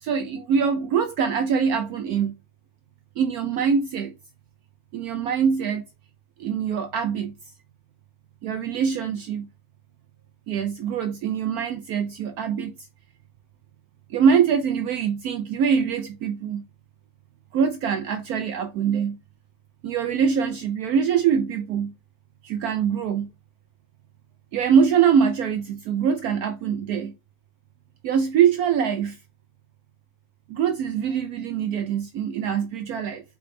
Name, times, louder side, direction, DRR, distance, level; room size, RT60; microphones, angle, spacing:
voice 1, 0.0-2.3 3.2-4.1 4.9-5.8 6.4-7.3 8.4-9.5 10.5-12.7 14.1-16.6 17.5-19.2 19.8-21.9 22.4-23.3 24.5-27.1 28.0-29.2 30.5-33.2, right 7 dB, 70° right, 0.9 m, -23 dB
4.8 x 3.3 x 3.1 m
omnidirectional pair, 1.9 m